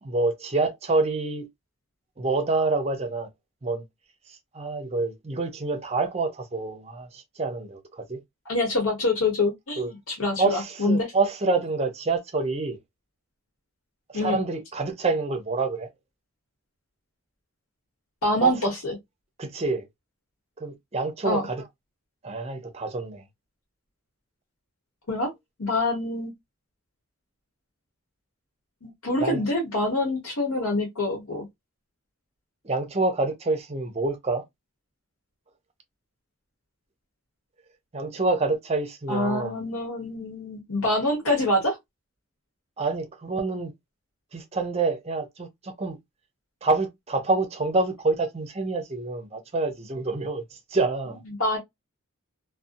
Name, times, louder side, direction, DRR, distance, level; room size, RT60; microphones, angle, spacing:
voice 1, 0.0-1.5 2.2-3.3 3.6-3.8 4.5-8.2 9.8-9.9 10.4-12.8 14.1-15.9 18.4-18.6 19.4-19.9 20.6-21.6 22.2-23.2 29.2-29.4 32.6-34.4 37.9-39.6 42.8-43.7 44.3-46.0 46.6-50.4 50.7-51.2, right 3 dB, 30° right, 0.6 m, -27 dB
voice 2, 8.5-11.1 14.1-14.4 18.2-19.0 21.2-21.4 25.1-25.3 25.6-26.3 28.8-31.4 39.1-41.8 51.4-51.6, left 1 dB, 80° left, 1.0 m, -25 dB
2.6 x 2.1 x 2.5 m
head